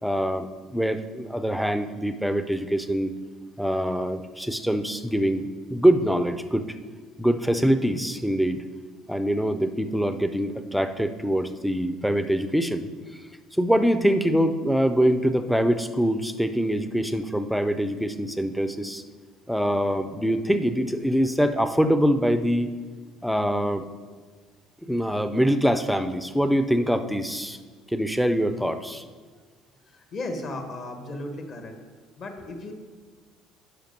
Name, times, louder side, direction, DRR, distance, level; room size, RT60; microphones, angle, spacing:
voice 1, 0.0-3.1 3.6-6.7 7.2-8.6 9.1-12.9 13.6-19.0 19.5-22.7 23.2-23.9 24.8-27.6 27.9-29.0, equal, ahead, 9 dB, 0.5 m, -24 dB
voice 2, 29.9-31.8 32.2-32.7, left 2 dB, 40° left, 5 dB, 1.2 m, -35 dB
11.0 x 5.1 x 5.3 m, 1.5 s
cardioid pair, 145°, 0 cm